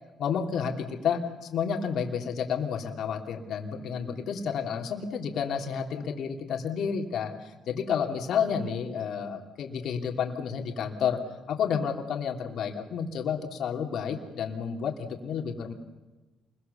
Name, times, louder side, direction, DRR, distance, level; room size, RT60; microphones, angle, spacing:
voice 1, 0.2-11.2 11.5-15.7, left 7 dB, 70° left, 3 dB, 3.1 m, -30 dB
28.5 x 22.5 x 7.1 m, 1.2 s
cardioid pair, 90°, 0 cm